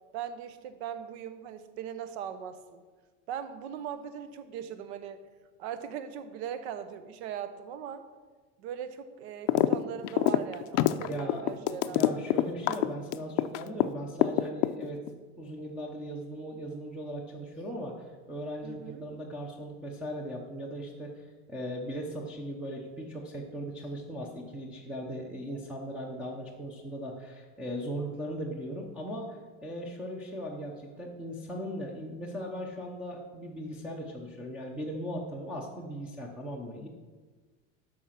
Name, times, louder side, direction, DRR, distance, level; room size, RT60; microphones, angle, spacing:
voice 1, 0.1-2.8 3.3-5.2 5.6-8.0 8.6-12.2 18.6-19.0, right 9 dB, 75° right, 10 dB, 1.0 m, -39 dB
sound 1, 9.5-9.8 10.0-13.9 14.2-15.1, left 15 dB, 80° left, 0.6 m, -25 dB
voice 2, 11.1-11.5 11.7-15.0 15.4-17.9 18.3-36.9, equal, 5° right, -5 dB, 0.5 m, -38 dB
12.5 x 4.9 x 5.7 m, 1.4 s
cardioid pair, 180°, 34 cm